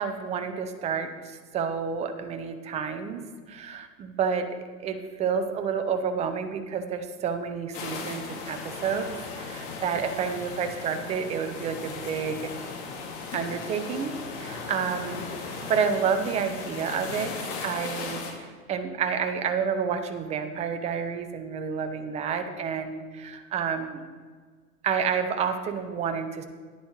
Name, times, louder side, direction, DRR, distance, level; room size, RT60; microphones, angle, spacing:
voice 1, 0.0-3.2 3.5-4.5 4.8-9.1 9.4-12.5 13.3-15.3 15.7-17.3 17.6-24.0 24.8-26.4, right 6 dB, 15° right, 8 dB, 0.5 m, -29 dB
sound 1, 7.7-18.3, left 4 dB, 45° left, 2.0 m, -37 dB
10.0 x 9.9 x 3.2 m, 1.6 s
figure-of-eight pair, 100°, 47 cm